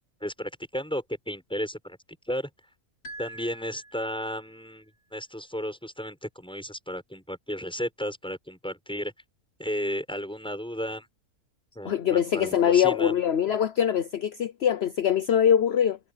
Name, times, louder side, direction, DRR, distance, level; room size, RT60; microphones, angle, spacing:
voice 1, 0.2-2.0 2.3-2.5 3.2-9.1 9.6-11.1 11.7-13.2, equal, 5° left, 6.9 m, -34 dB
sound 1, 3.0-4.6, right 1 dB, 85° left, 4.8 m, -45 dB
voice 2, 11.8-16.0, left 9 dB, 50° left, 0.9 m, -23 dB
omnidirectional pair, 1.6 m